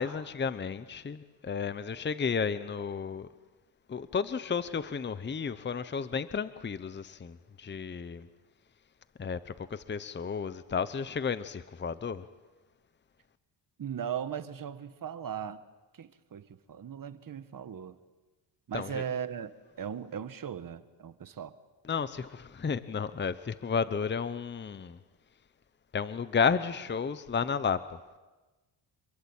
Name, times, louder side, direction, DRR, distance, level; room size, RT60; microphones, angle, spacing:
voice 1, 0.0-3.3 3.9-8.3 9.2-12.3 18.7-19.0 21.9-25.0 25.9-28.0, left 6 dB, 25° left, 0.9 m, -32 dB
voice 2, 13.8-15.6 15.9-18.0 18.7-21.5, right 8 dB, 45° right, 1.5 m, -38 dB
28.0 x 22.5 x 8.9 m
cardioid pair, 110°, 46 cm